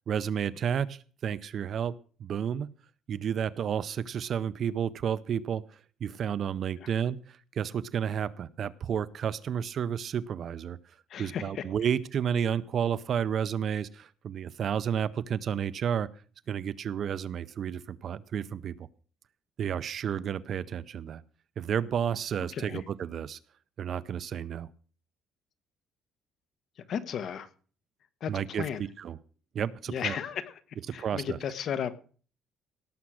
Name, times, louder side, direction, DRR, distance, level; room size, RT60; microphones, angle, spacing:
voice 1, 0.1-2.7 3.1-16.1 16.5-18.9 19.6-21.2 21.6-23.4 23.8-24.7 28.3-29.2 29.5-30.2 30.9-31.4, right 8 dB, 40° right, 17 dB, 0.5 m, -31 dB
voice 2, 11.1-11.6 22.5-22.8 26.9-27.5 28.2-28.8 29.9-30.5 30.9-32.0, left 8 dB, 45° left, 12 dB, 1.2 m, -34 dB
17.5 x 7.2 x 6.2 m, 0.41 s
cardioid pair, 160°, 0 cm